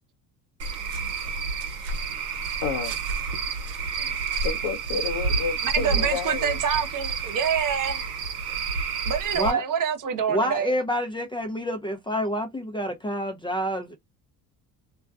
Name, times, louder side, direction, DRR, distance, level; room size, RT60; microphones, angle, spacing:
Cricket / Frog, 0.6-9.5, right 5 dB, 80° right, 0.9 m, -29 dB
voice 1, 2.6-3.0 4.4-6.6, left 6 dB, 60° left, 0.7 m, -30 dB
voice 2, 5.6-8.0 9.1-10.7, right 8 dB, 40° right, 0.8 m, -26 dB
voice 3, 10.3-13.9, equal, 10° left, 0.4 m, -28 dB
2.5 x 2.2 x 2.3 m
hypercardioid pair, 70°, 48 cm